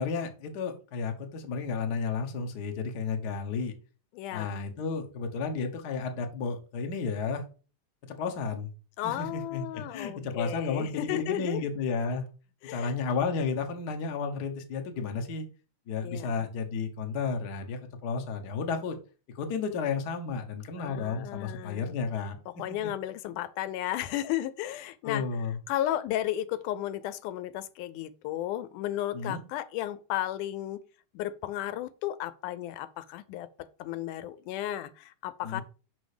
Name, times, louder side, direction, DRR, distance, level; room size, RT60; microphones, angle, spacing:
voice 1, 0.0-3.7 4.3-7.4 8.1-8.7 9.0-12.3 12.7-15.5 15.9-19.0 19.3-22.4 25.0-25.6 29.1-29.4 35.4-35.6, left 5 dB, 65° left, 1.0 m, -32 dB
voice 2, 4.1-4.6 9.0-11.7 12.6-12.9 16.0-16.4 20.8-22.0 22.6-25.2 25.7-30.8 31.1-33.5 33.8-35.6, left 13 dB, 80° left, 2.1 m, -34 dB
6.2 x 5.5 x 4.9 m
omnidirectional pair, 3.6 m